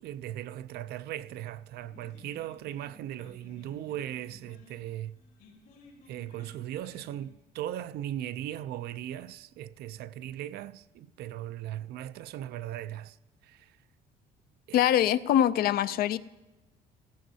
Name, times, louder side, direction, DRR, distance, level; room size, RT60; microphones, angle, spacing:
voice 1, 0.0-5.2 6.1-13.2 13.4-13.8 14.7-15.0, right 12 dB, 70° right, 0.4 m, -38 dB
sound 1, 1.7-7.3, left 2 dB, 80° left, 5.3 m, -56 dB
voice 2, 14.7-16.2, left 11 dB, 65° left, 0.5 m, -23 dB
15.5 x 15.5 x 2.7 m
cardioid pair, 110°, 17 cm